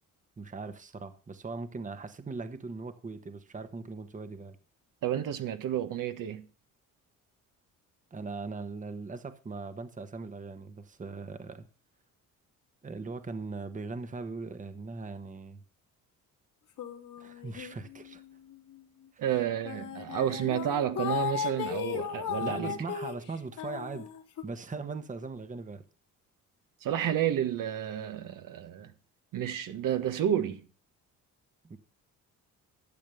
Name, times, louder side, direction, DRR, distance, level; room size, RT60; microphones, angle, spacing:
voice 1, 0.4-4.6 8.1-11.7 12.8-15.6 17.2-18.2 19.1-19.2 22.4-24.1 24.4-25.8 31.6-31.8, right 4 dB, 20° right, 1.2 m, -40 dB
voice 2, 5.0-6.4 19.2-22.7 26.8-28.9 29.3-30.6, right 10 dB, 70° right, 1.4 m, -30 dB
sound 1, 16.8-18.1 18.5-18.7 19.4-19.5 19.7-24.4, left 9 dB, 70° left, 2.6 m, -36 dB
12.0 x 6.7 x 6.9 m
cardioid pair, 110°, 34 cm